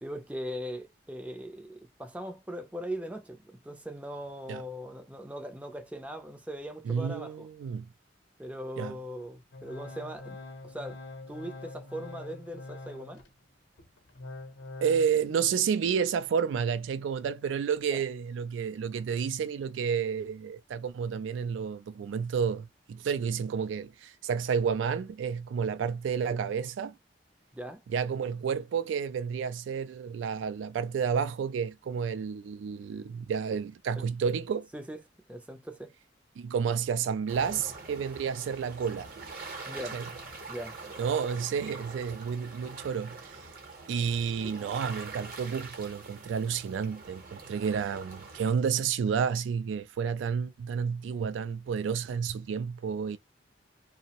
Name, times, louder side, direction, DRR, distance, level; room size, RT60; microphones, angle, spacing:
voice 1, 0.0-7.5 8.4-10.4 10.6-11.0 11.3-13.2 17.9-18.0 27.5-27.8 34.0-34.1 34.7-35.0 35.3-35.9 39.7-40.0 40.5-40.8 44.4-44.6, equal, 5° right, 0.4 m, -40 dB
voice 2, 6.9-7.9 8.8-8.9 14.8-26.9 27.9-34.7 36.4-39.1 39.9-40.1 41.0-43.4 43.9-53.2, right 6 dB, 85° right, 0.3 m, -30 dB
Organ, 9.5-13.3 13.8-15.1, left 2 dB, 70° left, 0.7 m, -44 dB
sound 1, 37.3-48.5, right 3 dB, 50° right, 0.8 m, -44 dB
2.6 x 2.0 x 2.8 m
head